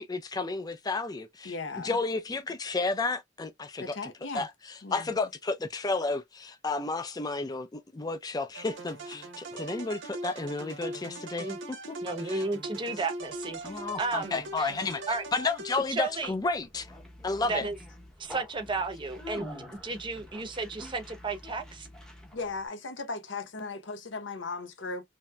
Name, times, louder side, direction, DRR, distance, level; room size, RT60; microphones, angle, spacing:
voice 1, 0.0-1.5 1.8-4.0 4.3-4.5 4.9-11.5 12.3-12.4 13.6-15.0 15.3-16.9 17.2-17.6, left 3 dB, 20° left, 0.4 m, -32 dB
voice 2, 1.4-2.0 3.8-4.5 4.8-5.3 17.6-17.7 22.3-25.1, left 3 dB, 80° left, 0.9 m, -37 dB
sound 1, 8.5-16.3, right 2 dB, 75° right, 0.8 m, -41 dB
voice 3, 12.0-14.7 15.1-15.2 15.9-16.3 17.4-17.8 18.2-21.9, right 3 dB, 25° right, 0.7 m, -33 dB
Conversation, 13.2-22.7, left 1 dB, 5° left, 0.8 m, -47 dB
3.0 x 2.7 x 2.2 m
head